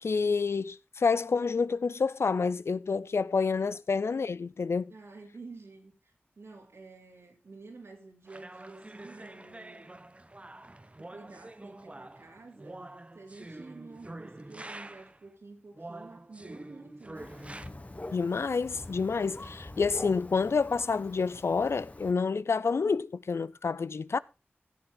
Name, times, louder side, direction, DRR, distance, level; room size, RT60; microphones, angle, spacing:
voice 1, 0.0-4.9 18.1-24.2, left 5 dB, 80° left, 0.4 m, -28 dB
voice 2, 4.9-9.9 11.0-12.9 13.1-17.3, right 3 dB, 90° right, 3.2 m, -50 dB
sound 1, 8.3-15.2 15.7-17.7, right 2 dB, 30° right, 0.8 m, -46 dB
Thunder, 17.1-22.1, left 2 dB, 35° left, 1.2 m, -45 dB
15.5 x 7.0 x 3.8 m
wide cardioid pair, 45°, 4 cm